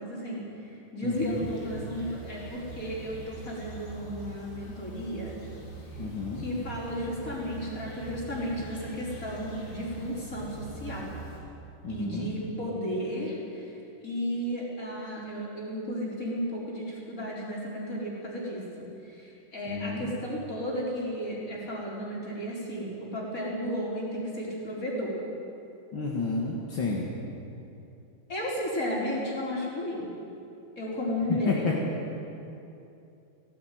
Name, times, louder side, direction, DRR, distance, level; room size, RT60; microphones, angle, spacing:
voice 1, 0.0-5.4 5.9-6.0 6.4-11.1 11.9-25.1 28.3-30.1 30.8-31.7, equal, 40° left, -4 dB, 5.1 m, -34 dB
voice 2, 1.0-1.5 6.0-6.5 11.8-12.3 19.7-20.1 25.9-27.1 31.3-31.7, left 4 dB, 70° left, -3 dB, 2.6 m, -31 dB
sound 1, 1.1-11.4, right 3 dB, 85° left, 4.9 m, -43 dB
17.0 x 16.5 x 9.3 m, 2.8 s
omnidirectional pair, 2.2 m